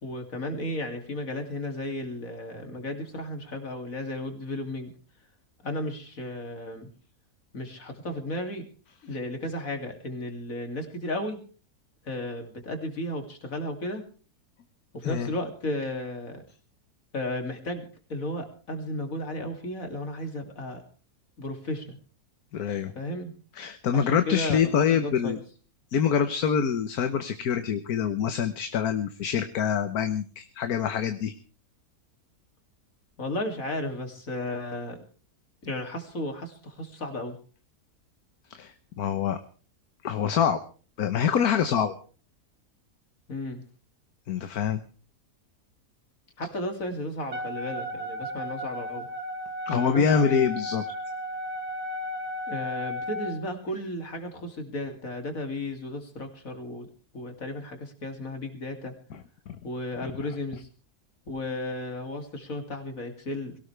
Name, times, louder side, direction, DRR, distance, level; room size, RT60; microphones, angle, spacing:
voice 1, 0.0-4.9 5.6-6.9 7.5-8.7 9.0-11.4 12.0-14.1 14.9-16.4 17.1-20.8 21.4-22.0 22.9-23.3 23.9-25.4 33.2-35.0 35.6-37.4 43.3-43.6 46.4-49.1 49.7-50.4 52.5-56.9 57.1-58.9 59.6-60.7 61.3-63.6, left 1 dB, 60° left, 5 dB, 3.2 m, -34 dB
voice 2, 22.5-22.9 23.6-25.4 25.9-31.3 38.5-39.4 40.0-40.6 41.0-41.9 44.3-44.8 49.7-50.8 59.5-59.6 60.0-60.1, left 7 dB, 75° left, 9 dB, 1.6 m, -25 dB
Wind instrument woodwind instrument, 47.3-53.4, left 1 dB, 75° right, 2.3 m, -34 dB
22.5 x 17.5 x 3.4 m, 0.39 s
omnidirectional pair, 1.6 m